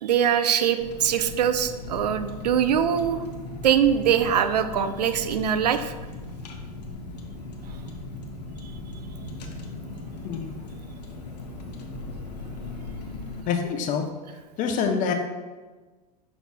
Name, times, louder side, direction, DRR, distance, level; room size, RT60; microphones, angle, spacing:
voice 1, 0.0-3.2 3.6-5.9, right 9 dB, 85° right, 10 dB, 0.4 m, -22 dB
Car, 0.8-13.4, left 2 dB, 85° left, 0.7 m, -38 dB
voice 2, 13.5-14.1 14.6-15.1, left 6 dB, 40° left, 4 dB, 0.7 m, -26 dB
5.9 x 4.0 x 2.2 m, 1.3 s
hypercardioid pair, 100°, 21 cm